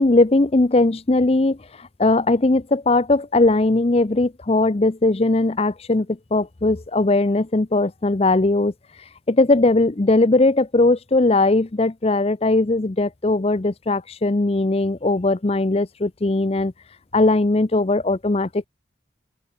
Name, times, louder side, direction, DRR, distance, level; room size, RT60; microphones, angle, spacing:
voice 1, 0.0-8.7 9.3-16.7 17.1-18.7, left 2 dB, 30° left, 0.6 m, -19 dB
open air
head